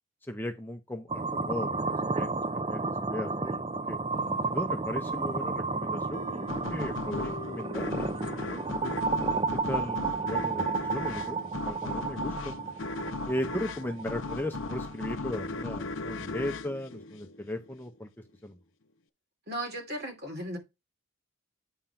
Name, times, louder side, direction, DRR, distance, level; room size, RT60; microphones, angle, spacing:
voice 1, 0.2-4.0 4.5-9.0 9.5-12.5 13.3-18.1 18.4-18.6, left 1 dB, 10° left, 0.7 m, -37 dB
sound 1, 1.1-15.1, right 4 dB, 25° right, 0.5 m, -32 dB
sound 2, 4.1-8.8, left 2 dB, 35° left, 1.2 m, -46 dB
sound 3, 6.5-17.7, left 3 dB, 65° left, 0.6 m, -37 dB
voice 2, 19.5-20.6, right 1 dB, 45° right, 2.7 m, -36 dB
8.8 x 3.8 x 5.7 m
head